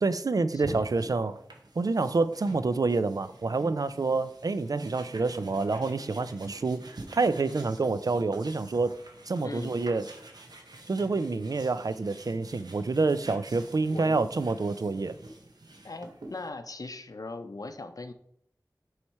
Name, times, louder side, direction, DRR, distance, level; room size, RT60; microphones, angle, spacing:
voice 1, 0.0-1.4 1.8-8.9 9.3-10.0 10.9-15.2, right 3 dB, 65° right, 14 dB, 0.4 m, -28 dB
voice 2, 0.5-1.2 9.4-9.8 13.9-14.5 15.8-18.1, left 3 dB, 60° left, 8 dB, 0.5 m, -40 dB
sound 1, 0.6-16.5, right 2 dB, 85° right, 0.9 m, -48 dB
7.1 x 3.2 x 4.5 m, 0.71 s
wide cardioid pair, 50°, 7 cm